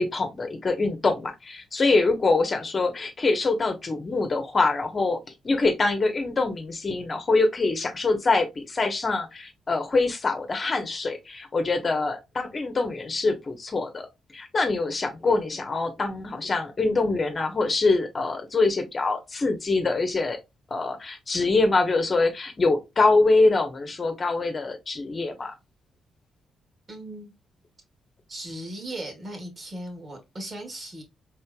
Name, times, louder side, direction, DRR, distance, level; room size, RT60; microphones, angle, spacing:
voice 1, 0.0-5.2 5.4-14.1 14.3-20.4 20.7-25.5, left 3 dB, 40° left, 1.1 m, -24 dB
voice 2, 26.9-27.3 28.3-31.0, right 1 dB, 40° right, 2.3 m, -37 dB
4.4 x 3.7 x 2.3 m
supercardioid pair, 65°, 0 cm